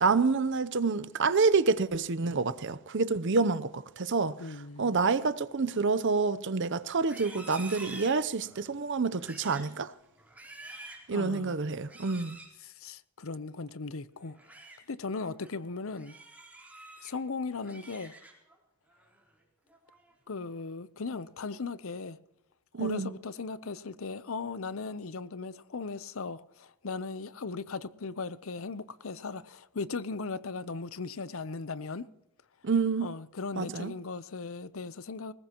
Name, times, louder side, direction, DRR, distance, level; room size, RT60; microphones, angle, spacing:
voice 1, 0.0-4.4 4.8-9.9 11.1-12.4 22.7-23.1 32.6-33.1 33.6-33.9, right 4 dB, 55° right, 0.7 m, -28 dB
voice 2, 4.4-5.0 11.1-11.6 12.6-14.4 14.9-16.2 17.0-18.1 20.3-22.2 22.8-32.1 33.0-35.3, left 4 dB, 65° left, 0.7 m, -38 dB
Livestock farm animals working animals, 7.0-8.6 9.1-9.7 10.2-11.1 11.8-12.5 14.2-14.8 15.2-15.5 16.0-17.1 17.5-18.5 18.9-19.3 19.7-20.1, right 2 dB, 5° right, 4.0 m, -48 dB
21.5 x 18.5 x 3.0 m
head